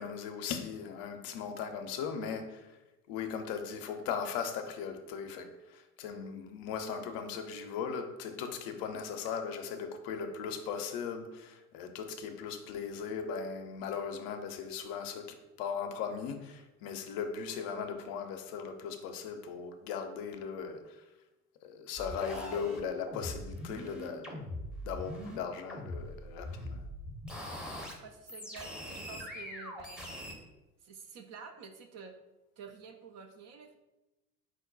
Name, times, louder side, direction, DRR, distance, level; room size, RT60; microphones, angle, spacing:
voice 1, 0.0-2.8 3.1-21.0 21.6-24.3 24.8-26.8, left 6 dB, 50° left, 6 dB, 0.6 m, -38 dB
sound 1, 22.0-25.4 25.7-27.9 28.3-30.3, left 1 dB, ahead, 0.7 m, -42 dB
voice 2, 28.0-30.1 30.8-32.1 32.6-33.8, right 5 dB, 35° right, 5 dB, 0.5 m, -49 dB
4.7 x 2.1 x 3.9 m, 1.0 s
figure-of-eight pair, 65°, 46 cm